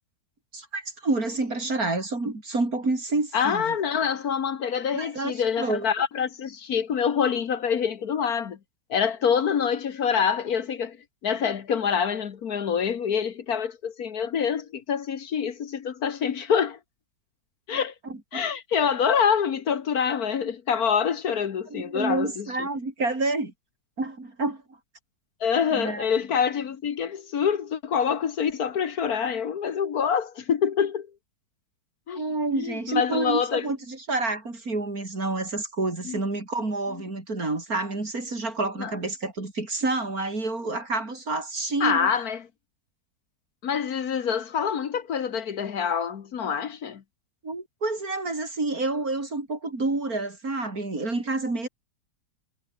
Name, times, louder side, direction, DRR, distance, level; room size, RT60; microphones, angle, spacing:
voice 1, 0.5-3.7 4.9-5.9 17.7-18.4 21.7-23.5 24.0-24.6 25.7-26.0 32.1-42.1 47.4-51.7, right 2 dB, 55° right, 5.2 m, -29 dB
voice 2, 3.3-8.6 8.9-11.0 11.2-16.8 17.7-17.9 18.3-22.7 25.4-31.1 32.1-32.2 32.5-33.7 36.0-36.2 38.8-38.9 41.8-42.5 43.6-47.0, left 7 dB, 60° left, 1.6 m, -26 dB
omnidirectional pair, 1.8 m